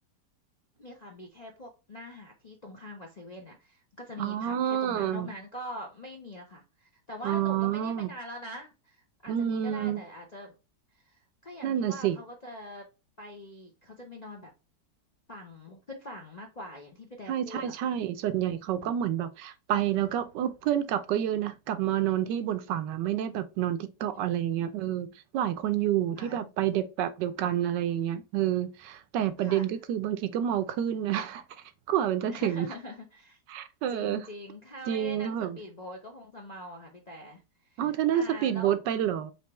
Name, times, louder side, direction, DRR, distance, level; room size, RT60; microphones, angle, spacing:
voice 1, 0.8-10.6 10.9-12.8 13.2-14.5 15.3-18.1 18.7-19.0 24.3-24.6 26.2-26.5 29.4-29.7 32.3-33.4 33.9-37.8 38.1-38.7, left 1 dB, 40° left, 0.5 m, -44 dB
voice 2, 4.2-5.3 7.2-8.1 9.3-10.0 11.6-12.2 17.3-31.4 31.9-32.7 33.5-34.3 34.9-35.6 37.8-39.3, right 10 dB, 75° right, 1.2 m, -29 dB
4.5 x 3.2 x 2.9 m
omnidirectional pair, 2.0 m